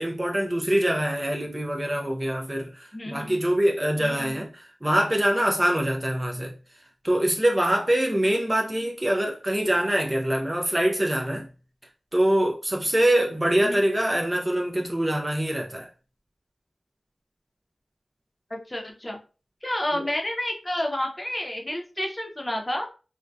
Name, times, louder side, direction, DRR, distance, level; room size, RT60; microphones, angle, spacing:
voice 1, 0.0-6.5 7.0-11.5 12.1-15.9 19.9-20.0, right 1 dB, 20° right, 0.4 m, -24 dB
voice 2, 2.9-3.4 4.0-4.4 13.6-13.8 18.5-19.2 19.6-22.9, left 1 dB, 20° left, 0.6 m, -30 dB
2.5 x 2.1 x 2.3 m
wide cardioid pair, 70°, 0 cm